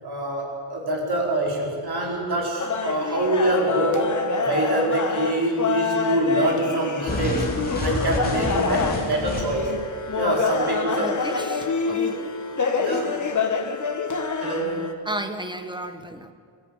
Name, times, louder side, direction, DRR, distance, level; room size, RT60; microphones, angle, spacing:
voice 1, 0.0-7.5 7.8-9.7 10.1-11.2 12.8-13.2 14.4-14.9, right 1 dB, 50° right, -1 dB, 5.0 m, -25 dB
sound 1, 2.6-14.9, left 5 dB, 35° left, 1.4 m, -27 dB
sound 2, 7.1-9.7, left 1 dB, 20° left, 3.3 m, -28 dB
voice 2, 11.0-12.3 15.0-16.3, right 1 dB, 10° right, 8 dB, 1.1 m, -33 dB
23.0 x 13.5 x 9.7 m, 2.1 s
wide cardioid pair, 175°, 49 cm